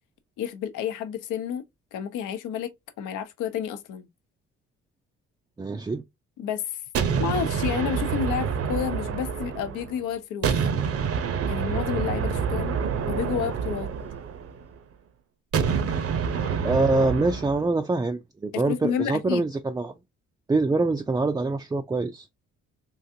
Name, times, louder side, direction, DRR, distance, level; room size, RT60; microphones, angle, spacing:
voice 1, 0.4-1.6 1.9-2.7 3.0-4.1 6.4-6.8 7.2-10.5 11.5-12.8 13.1-13.9 18.5-19.5, left 9 dB, 85° left, 0.7 m, -30 dB
voice 2, 5.6-6.0 16.6-19.9 20.5-22.3, right 3 dB, 15° right, 0.3 m, -25 dB
Tank Shots, 6.9-10.0 10.4-14.7 15.5-17.6, right 6 dB, 50° right, 0.7 m, -27 dB
3.8 x 2.5 x 2.6 m
cardioid pair, 90°, 30 cm